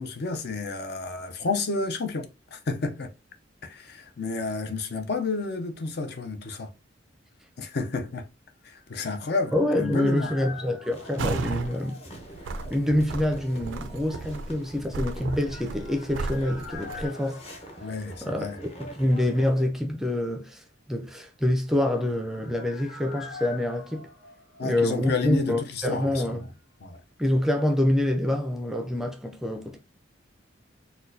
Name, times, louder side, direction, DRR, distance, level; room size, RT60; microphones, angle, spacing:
voice 1, 0.0-3.1 3.6-6.7 7.6-8.3 8.6-10.3 17.8-18.6 24.6-26.4 26.8-27.0, left 3 dB, 60° left, 0.6 m, -31 dB
sound 1, 8.6-12.5 12.7-12.8 15.2-19.0 19.2-19.3 21.6-25.4 25.7-25.8, left 4 dB, 85° left, 1.4 m, -45 dB
voice 2, 9.5-12.0 12.7-17.4 18.2-20.6 20.9-24.1 24.6-26.5 27.2-29.8, left 1 dB, ahead, 0.4 m, -26 dB
sound 2, 10.9-19.7, equal, 35° left, 0.8 m, -46 dB
sound 3, 11.2-11.7 12.1-17.1, right 3 dB, 85° right, 0.4 m, -34 dB
4.2 x 2.2 x 2.6 m
head